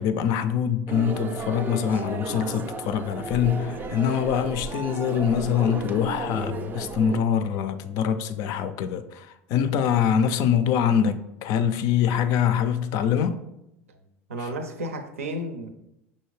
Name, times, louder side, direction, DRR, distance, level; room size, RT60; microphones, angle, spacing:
voice 1, 0.0-13.4, left 8 dB, 55° left, 0.4 m, -24 dB
sound 1, 0.9-7.2, right 4 dB, 25° right, 0.4 m, -34 dB
voice 2, 14.3-15.7, right 1 dB, 85° right, 0.5 m, -32 dB
5.6 x 2.6 x 3.1 m
hypercardioid pair, 80°, 7 cm